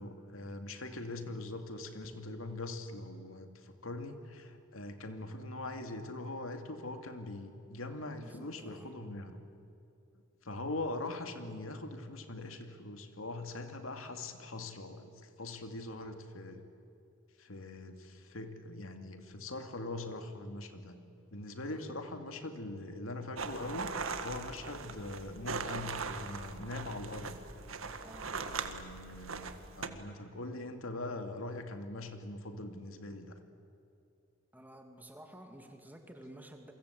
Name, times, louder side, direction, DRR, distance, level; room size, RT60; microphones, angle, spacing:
voice 1, 0.0-9.4 10.4-16.6 17.4-21.0 21.3-23.9 24.2-27.6 28.4-33.4, left 2 dB, 85° left, 6 dB, 2.5 m, -42 dB
voice 2, 8.1-8.9 21.7-22.0 28.0-28.4 34.5-36.7, right 1 dB, 10° right, 4 dB, 2.4 m, -52 dB
sound 1, 23.4-29.9, right 4 dB, 85° right, 1.7 m, -40 dB
28.5 x 24.0 x 8.5 m, 2.6 s
head